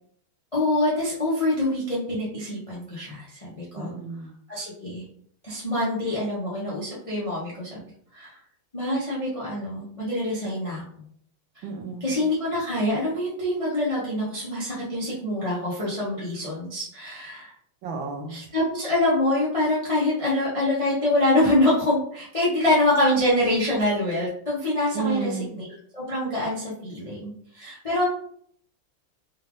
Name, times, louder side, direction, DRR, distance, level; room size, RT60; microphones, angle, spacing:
voice 1, 0.5-3.9 4.5-5.0 5.4-7.8 8.1-8.4 8.7-10.8 11.5-11.6 12.0-17.5 18.3-25.7 25.9-28.0, left 1 dB, 35° left, -6 dB, 0.5 m, -25 dB
voice 2, 3.8-4.3 11.6-12.2 17.8-18.4 24.9-25.6, right 6 dB, 75° right, 1 dB, 1.4 m, -32 dB
4.2 x 3.3 x 2.5 m, 0.63 s
omnidirectional pair, 2.3 m